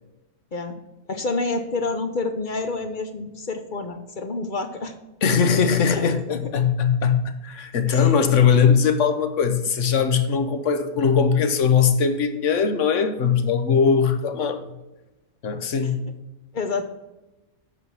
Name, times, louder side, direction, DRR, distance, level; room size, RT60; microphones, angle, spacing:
voice 1, 1.1-4.9 5.9-6.0 7.9-8.3 15.8-15.9 16.5-16.8, left 3 dB, 45° left, 7 dB, 0.8 m, -28 dB
voice 2, 5.2-14.6 15.4-16.1, left 6 dB, 75° left, 9 dB, 1.2 m, -20 dB
8.5 x 5.4 x 6.2 m, 1.0 s
omnidirectional pair, 1.3 m